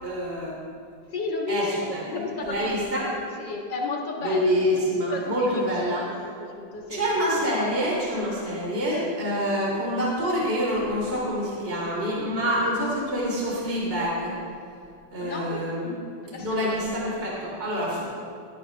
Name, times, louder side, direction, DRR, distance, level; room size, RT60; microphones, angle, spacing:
voice 1, 0.0-0.6 1.5-1.6 1.9-3.0 4.2-6.0 6.9-14.3 15.1-15.9 16.4-18.0, equal, 20° right, -5 dB, 2.9 m, -26 dB
voice 2, 1.1-4.5 5.1-6.0 6.5-7.1 15.2-15.7 16.2-16.7, left 3 dB, 45° left, -1 dB, 1.7 m, -33 dB
17.5 x 13.5 x 3.4 m, 2.4 s
omnidirectional pair, 3.5 m